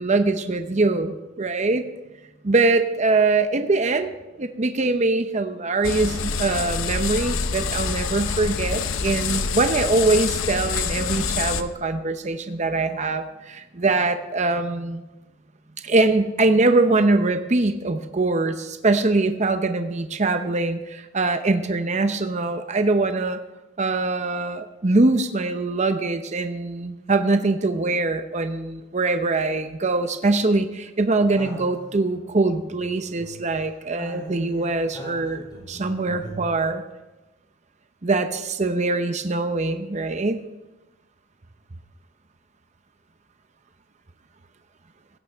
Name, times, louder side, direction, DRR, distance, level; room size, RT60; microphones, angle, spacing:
voice 1, 0.0-1.8 2.4-4.1 4.4-15.0 15.8-23.4 23.8-36.8 38.0-40.4, right 3 dB, 35° right, 8 dB, 0.7 m, -23 dB
sound 1, 5.8-11.6, left 5 dB, 80° left, 0.9 m, -26 dB
sound 2, 31.3-33.5 33.8-36.5, right 1 dB, 20° left, 4.1 m, -40 dB
16.5 x 16.0 x 3.5 m, 1.1 s
head